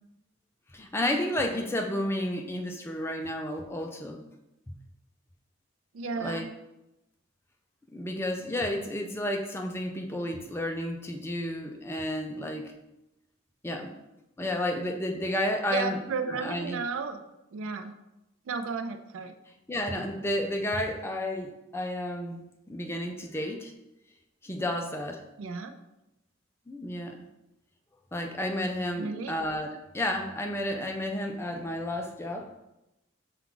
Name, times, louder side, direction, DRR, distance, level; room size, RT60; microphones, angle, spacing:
voice 1, 0.7-4.2 4.7-4.8 6.2-6.5 7.9-12.7 13.6-13.9 14.4-16.0 16.3-16.8 19.7-23.7 24.4-25.2 26.7-27.2 28.1-32.5, left 1 dB, 10° left, 3 dB, 0.4 m, -31 dB
voice 2, 5.9-6.5 15.7-17.2 17.5-17.9 18.5-19.3 25.4-25.8 29.0-29.4, right 5 dB, 80° right, 8 dB, 0.4 m, -33 dB
5.8 x 2.3 x 3.8 m, 0.93 s
head